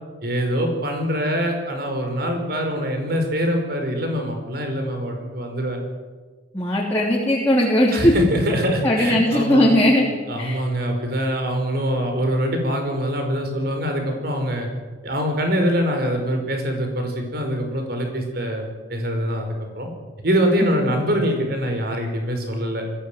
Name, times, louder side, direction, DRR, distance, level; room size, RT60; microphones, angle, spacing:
voice 1, 0.2-5.8 7.9-9.8 10.3-14.7 15.0-19.5 19.7-19.9 20.2-22.8, equal, 50° right, 4 dB, 5.1 m, -24 dB
voice 2, 6.5-8.1 8.8-10.0 10.4-10.6 20.6-20.9, left 1 dB, 15° left, -4 dB, 3.3 m, -18 dB
21.5 x 16.0 x 9.3 m, 1.4 s
head